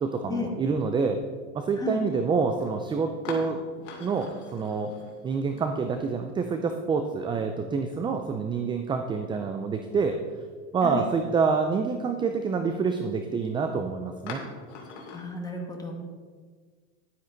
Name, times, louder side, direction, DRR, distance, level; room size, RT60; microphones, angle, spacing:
voice 1, 0.0-1.2 1.5-4.9 5.2-10.2 10.7-14.4, right 5 dB, 15° right, 6 dB, 0.4 m, -27 dB
sound 1, 1.8-1.9 2.5-2.7 3.2-6.2 6.4-6.5 8.0-8.6 9.1-9.2 9.8-9.9 14.3-15.2, left 4 dB, 75° left, 2.7 m, -42 dB
voice 2, 15.1-15.9, left 4 dB, 10° left, 1 dB, 1.8 m, -33 dB
11.0 x 9.7 x 4.0 m, 1.6 s
supercardioid pair, 130°, 36 cm